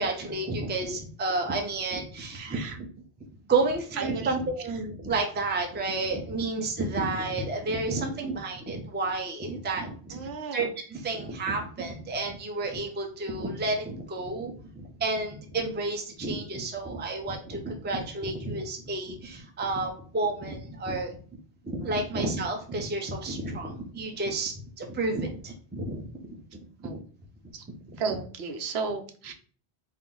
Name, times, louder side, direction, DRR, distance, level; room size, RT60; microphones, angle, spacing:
voice 1, 0.0-2.9 3.5-10.2 10.5-21.2 21.6-26.4 26.8-27.0 27.9-28.2, right 3 dB, 15° right, 3 dB, 0.4 m, -31 dB
voice 2, 2.4-2.8 4.0-4.3 10.1-10.7 22.1-22.2 26.8-27.0 27.5-27.6 28.0-29.3, right 5 dB, 75° right, 5 dB, 0.9 m, -34 dB
4.3 x 2.0 x 3.7 m, 0.43 s
omnidirectional pair, 1.1 m